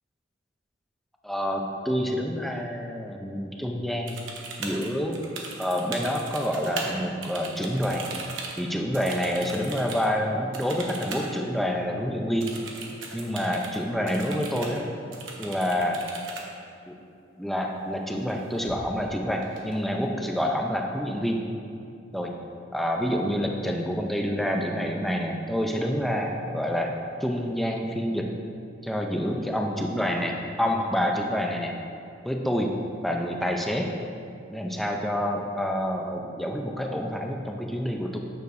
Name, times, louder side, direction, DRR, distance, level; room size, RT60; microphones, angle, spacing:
voice 1, 1.2-4.2 4.6-5.2 5.6-8.1 8.6-12.5 13.1-15.0 15.4-16.1 16.9-17.0 17.4-21.4 22.1-22.3 22.7-28.3 28.8-31.7 32.2-32.7 33.0-33.9 34.5-38.2, equal, ahead, 1 dB, 0.5 m, -28 dB
sound 1, 4.1-6.9 7.2-10.1 10.5-11.3 11.6-11.7 12.4-13.8 14.1-14.8 15.1-16.4 18.1-18.3 18.6-19.1 19.4-20.1, right 4 dB, 85° right, 0.9 m, -38 dB
9.3 x 6.6 x 2.6 m, 2.5 s
head